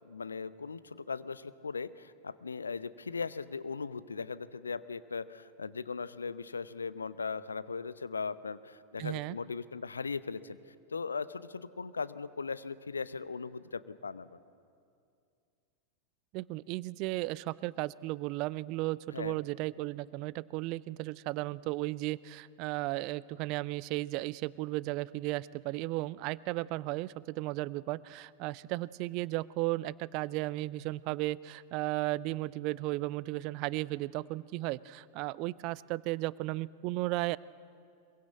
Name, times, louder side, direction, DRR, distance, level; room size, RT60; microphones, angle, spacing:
voice 1, 0.0-10.6 10.9-14.4 19.1-19.4, left 5 dB, 75° left, 15 dB, 0.8 m, -38 dB
voice 2, 9.0-9.4 16.3-37.4, right 19 dB, 40° right, 21 dB, 0.5 m, -35 dB
23.0 x 22.5 x 8.3 m, 2.4 s
figure-of-eight pair, 90°, 0 cm